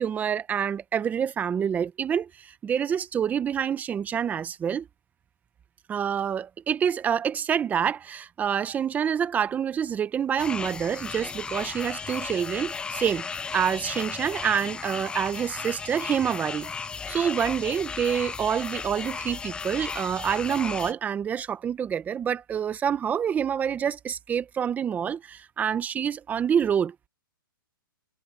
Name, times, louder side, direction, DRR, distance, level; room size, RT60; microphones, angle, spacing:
voice 1, 0.0-4.9 5.9-16.7 17.1-26.9, right 8 dB, 15° right, 1.1 m, -27 dB
sound 1, 10.4-20.9, left 5 dB, 10° left, 0.5 m, -35 dB
hypercardioid pair, 145°, 12 cm